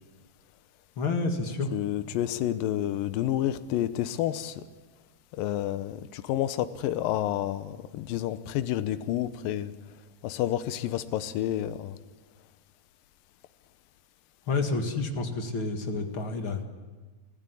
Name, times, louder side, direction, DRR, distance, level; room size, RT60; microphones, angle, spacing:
voice 1, 1.0-1.7 14.5-16.6, left 3 dB, 45° left, 2.0 m, -29 dB
voice 2, 1.7-4.5 5.4-9.7 10.2-12.0, left 12 dB, 75° left, 2.4 m, -29 dB
25.5 x 15.5 x 9.8 m
omnidirectional pair, 4.4 m